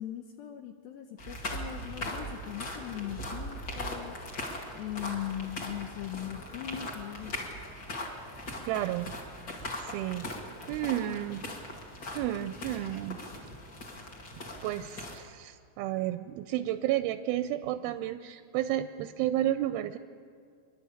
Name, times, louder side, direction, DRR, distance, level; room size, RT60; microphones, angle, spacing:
voice 1, 0.0-4.2 4.8-7.3, left 11 dB, 75° left, 6 dB, 2.4 m, -39 dB
sound 1, 1.2-15.2, left 1 dB, 35° left, 2.1 m, -40 dB
voice 2, 8.7-9.1 9.8-11.4 12.2-13.2 14.6-20.0, right 13 dB, 80° right, 10 dB, 2.3 m, -32 dB
27.5 x 11.0 x 8.6 m, 2.3 s
omnidirectional pair, 4.6 m